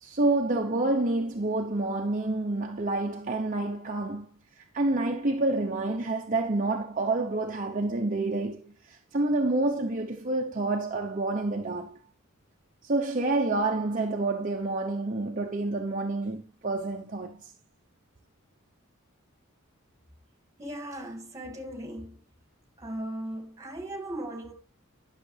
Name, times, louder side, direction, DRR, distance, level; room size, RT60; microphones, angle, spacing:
voice 1, 0.0-4.3 4.6-12.0 12.8-17.5, right 2 dB, 40° right, 0.9 m, -28 dB
voice 2, 20.6-22.2 22.8-24.5, right 1 dB, 15° right, 2.4 m, -37 dB
11.5 x 6.5 x 3.4 m
head